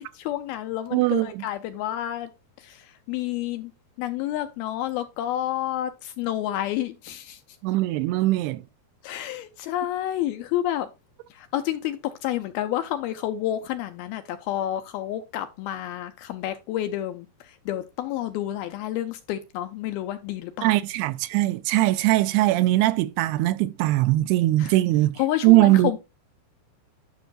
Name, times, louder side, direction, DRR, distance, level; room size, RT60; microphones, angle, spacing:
voice 1, 0.0-2.3 2.6-2.8 3.1-3.7 4.0-7.4 9.0-10.9 11.4-17.3 17.7-20.7 24.6-24.7 25.2-26.0, left 12 dB, 85° left, 2.3 m, -29 dB
voice 2, 0.9-1.5 7.6-8.6 20.6-25.1 25.4-26.0, right 17 dB, 80° right, 2.5 m, -21 dB
11.5 x 6.1 x 2.4 m
omnidirectional pair, 4.8 m